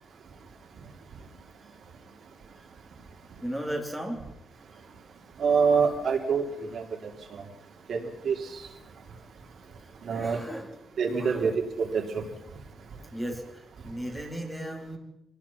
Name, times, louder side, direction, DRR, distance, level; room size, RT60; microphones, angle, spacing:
voice 1, 3.4-4.2 10.0-10.7 11.2-11.5 13.1-15.0, equal, ahead, 1 dB, 3.9 m, -35 dB
voice 2, 5.4-6.4 6.7-6.8 7.3-7.4 7.9-8.0 8.2-8.3 10.0-10.4 11.0-11.5 11.8-12.2, right 6 dB, 55° right, 2 dB, 3.3 m, -25 dB
26.0 x 19.0 x 5.9 m, 0.82 s
wide cardioid pair, 170°, 0 cm